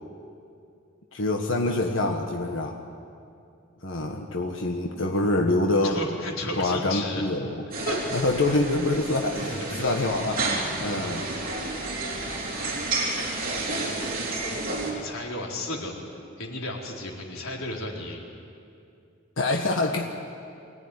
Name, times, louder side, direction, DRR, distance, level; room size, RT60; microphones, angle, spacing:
voice 1, 1.1-2.8 3.8-6.0 6.5-7.6 8.1-10.4 10.8-11.3 19.4-20.1, left 2 dB, 70° left, 2 dB, 1.5 m, -25 dB
voice 2, 5.8-7.3 7.8-8.0 9.4-9.9 10.8-11.1 14.9-15.9 16.4-18.2, left 1 dB, 85° left, -1 dB, 4.1 m, -33 dB
sound 1, 7.7-14.9, right 2 dB, 45° right, 4.0 m, -30 dB
23.5 x 17.5 x 9.9 m, 2.5 s
head